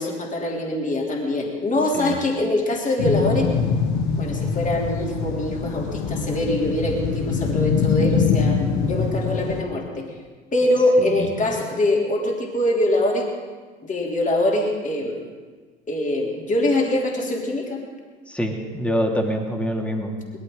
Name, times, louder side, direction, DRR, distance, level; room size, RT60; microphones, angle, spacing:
voice 1, 0.0-3.5 4.2-10.1 10.5-13.2 13.8-15.2 15.9-17.8, left 1 dB, 25° left, -1 dB, 3.1 m, -23 dB
sound 1, 3.0-9.6, left 6 dB, 60° left, 1.6 m, -23 dB
voice 2, 11.0-11.6 18.3-20.1, equal, 5° left, 1 dB, 2.6 m, -26 dB
20.5 x 14.0 x 3.9 m, 1.4 s
figure-of-eight pair, 70°, 32 cm